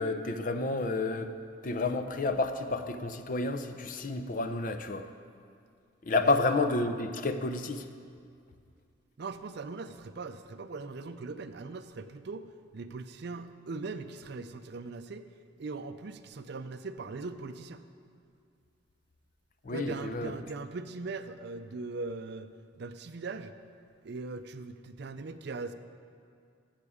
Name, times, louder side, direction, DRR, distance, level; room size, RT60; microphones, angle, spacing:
voice 1, 0.0-1.3 1.6-5.0 6.0-7.9 19.6-20.3, left 3 dB, 40° left, 9 dB, 0.5 m, -30 dB
voice 2, 9.2-12.5 12.7-15.2 15.6-17.8 19.7-22.5 22.8-23.5 24.0-25.7, right 3 dB, 55° right, 10 dB, 0.5 m, -40 dB
14.0 x 7.4 x 4.9 m, 2.3 s
head